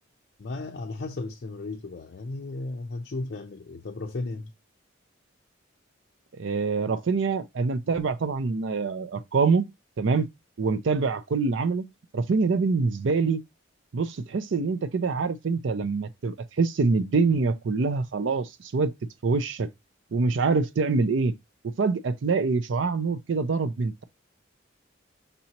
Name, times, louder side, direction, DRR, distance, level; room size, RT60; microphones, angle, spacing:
voice 1, 0.4-4.5, left 2 dB, 55° left, 0.5 m, -35 dB
voice 2, 6.4-9.7 10.0-10.3 10.6-11.9 12.1-13.4 13.9-18.9 19.2-19.7 20.1-21.3 21.8-24.0, right 4 dB, 65° right, 0.5 m, -25 dB
5.3 x 2.8 x 2.9 m
head